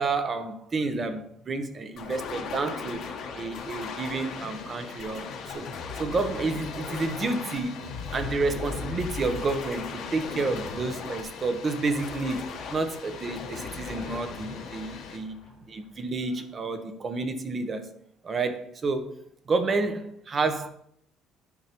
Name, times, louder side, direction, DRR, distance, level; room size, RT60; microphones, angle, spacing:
voice 1, 0.0-3.0 3.3-5.7 5.9-15.4 15.7-17.9 18.2-20.7, right 3 dB, 30° right, 8 dB, 0.8 m, -30 dB
sound 1, 2.0-15.8, left 5 dB, 55° left, 1.1 m, -38 dB
Water, 3.5-15.2, left 6 dB, 70° left, 1.6 m, -44 dB
9.5 x 5.4 x 2.9 m, 0.69 s
cardioid pair, 150°, 0 cm